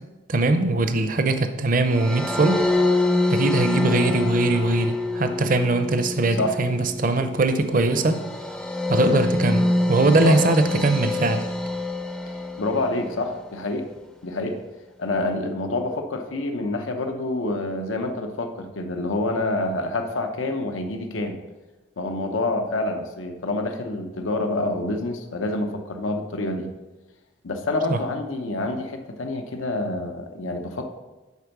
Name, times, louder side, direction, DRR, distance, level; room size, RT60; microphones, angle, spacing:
voice 1, 0.3-2.6 3.3-8.2 8.9-11.4 27.9-28.0, right 2 dB, 45° right, 8 dB, 0.6 m, -21 dB
sound 1, 1.9-13.2, left 2 dB, 5° left, 0.5 m, -26 dB
voice 2, 6.3-6.6 10.2-10.4 12.6-13.9 14.2-14.6 15.0-21.4 22.0-26.7 27.4-30.9, left 2 dB, 90° left, 5 dB, 0.8 m, -27 dB
8.3 x 4.4 x 5.9 m, 1.1 s
head